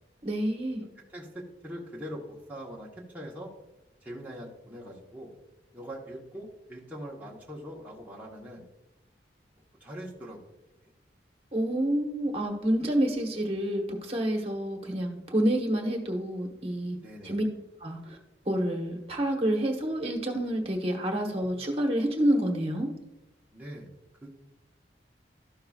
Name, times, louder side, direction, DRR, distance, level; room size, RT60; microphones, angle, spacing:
voice 1, 0.2-0.8 11.5-17.0 17.2-17.4 17.8-18.2 18.5-22.9, right 1 dB, 35° right, 2 dB, 1.2 m, -28 dB
voice 2, 1.1-2.9 3.1-3.5 4.0-5.3 5.7-8.6 9.8-10.4 17.0-17.4 23.5-23.9 24.2-24.4, equal, 10° right, -5 dB, 1.0 m, -42 dB
13.0 x 5.7 x 2.4 m, 0.96 s
head